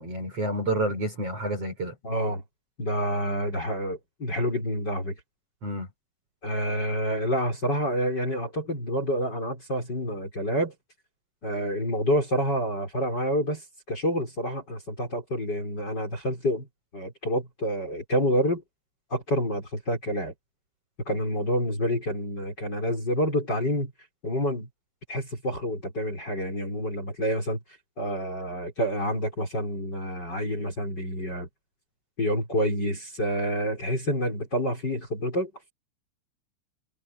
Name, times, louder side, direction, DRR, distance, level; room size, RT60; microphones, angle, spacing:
voice 1, 0.0-1.9 5.6-5.9, right 1 dB, 30° right, 5.9 m, -29 dB
voice 2, 2.0-2.4 2.8-5.2 6.4-10.7 11.4-13.6 13.9-16.7 16.9-18.6 19.1-20.3 21.1-23.9 24.2-24.7 25.1-27.6 28.0-31.5 32.2-35.7, equal, 20° left, 5.7 m, -28 dB
omnidirectional pair, 6.0 m